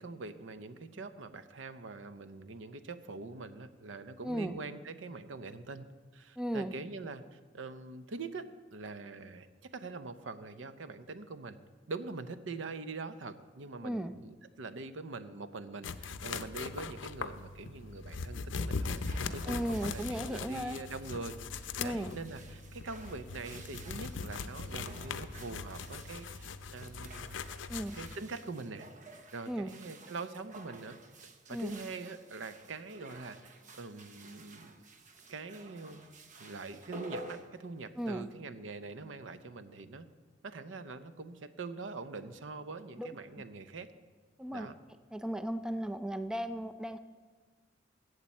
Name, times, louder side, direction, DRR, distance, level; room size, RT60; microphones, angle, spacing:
voice 1, 0.0-5.8 6.1-11.6 11.9-19.0 19.3-27.4 27.9-28.9 29.3-31.0 31.5-34.8 35.3-36.1 36.4-40.1 40.4-43.9 44.5-44.8, right 3 dB, 80° right, 11 dB, 0.7 m, -44 dB
voice 2, 4.2-4.6 6.4-6.7 13.8-14.1 19.5-20.8 21.8-22.1 27.7-28.0 29.5-29.7 31.5-31.7 38.0-38.3 43.0-43.1 44.4-44.7 45.1-47.0, equal, 5° right, 10 dB, 0.3 m, -35 dB
sound 1, 15.8-28.2, left 4 dB, 80° left, 0.5 m, -40 dB
sound 2, 18.7-38.3, right 2 dB, 40° right, 0.7 m, -52 dB
14.5 x 8.1 x 4.3 m, 1.5 s
head